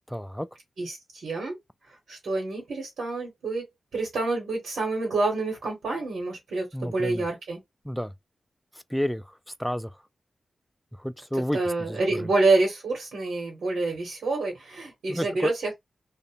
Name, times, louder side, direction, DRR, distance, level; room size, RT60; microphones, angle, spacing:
voice 1, 0.1-0.5 6.7-7.3 7.8-8.1 8.9-10.0 10.9-12.3 15.1-15.5, equal, 5° left, 0.3 m, -31 dB
voice 2, 0.8-1.5 2.1-3.6 3.9-7.6 11.5-15.7, right 3 dB, 85° right, 0.9 m, -27 dB
2.5 x 2.1 x 2.8 m
cardioid pair, 50°, 0 cm